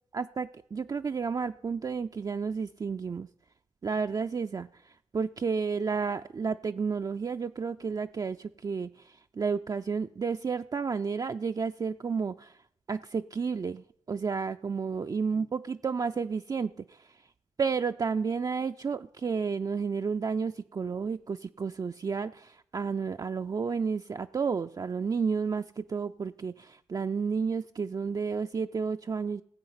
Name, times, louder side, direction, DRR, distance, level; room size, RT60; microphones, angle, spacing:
voice 1, 0.1-3.3 3.8-12.6 12.9-17.1 17.6-29.4, right 5 dB, 35° right, 7 dB, 0.4 m, -31 dB
16.5 x 7.6 x 5.7 m, 0.71 s
cardioid pair, 55°, 11 cm